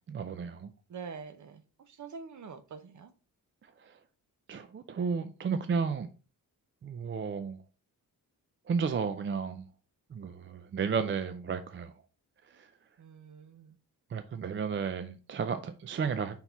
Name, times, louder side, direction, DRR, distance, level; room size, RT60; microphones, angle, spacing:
voice 1, 0.1-0.7 3.8-3.9 4.5-6.1 6.8-7.6 8.7-9.7 10.1-11.9 12.5-12.7 14.1-16.4, right 6 dB, 35° right, 0.4 m, -33 dB
voice 2, 0.9-3.1 13.0-13.8, right 5 dB, 55° right, 0.8 m, -45 dB
5.5 x 4.5 x 4.4 m
wide cardioid pair, 175°, 35 cm